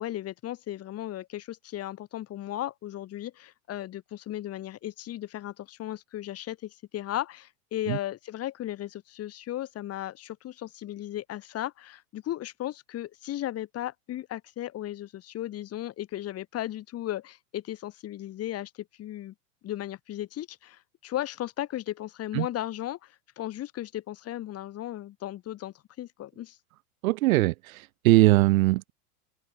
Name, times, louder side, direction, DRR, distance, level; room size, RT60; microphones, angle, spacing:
voice 1, 0.0-19.3 19.6-26.6, left 13 dB, 30° left, 4.8 m, -36 dB
voice 2, 27.0-27.8 28.0-28.9, right 19 dB, 60° right, 0.8 m, -21 dB
supercardioid pair, 130°, 46 cm